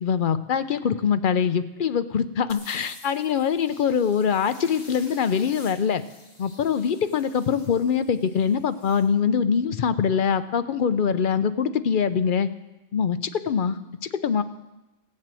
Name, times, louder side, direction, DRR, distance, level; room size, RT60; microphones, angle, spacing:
voice 1, 0.0-6.0 6.4-12.5 12.9-14.4, left 7 dB, 55° left, 12 dB, 0.6 m, -23 dB
sound 1, 2.5-9.1, left 2 dB, 35° left, 1.8 m, -49 dB
17.0 x 7.6 x 7.5 m, 1.0 s
omnidirectional pair, 1.3 m